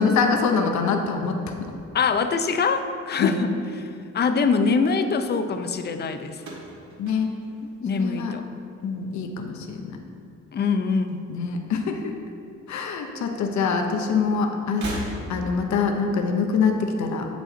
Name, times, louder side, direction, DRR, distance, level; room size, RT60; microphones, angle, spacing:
voice 1, 0.0-1.7 3.2-3.4 7.0-7.3 7.9-8.3 8.8-10.0 11.3-12.2 12.7-17.3, left 5 dB, 70° left, 4 dB, 0.8 m, -24 dB
voice 2, 1.9-6.4 7.6-8.4 10.5-11.2 12.7-12.9, left 5 dB, 35° left, 8 dB, 0.5 m, -24 dB
sound 1, 6.4-8.7 9.0-9.6 10.6-11.7 11.9-12.0 13.2-13.3 14.6-15.7, equal, 65° right, 1.7 m, -38 dB
7.5 x 5.1 x 3.9 m, 2.4 s
cardioid pair, 90°, 30 cm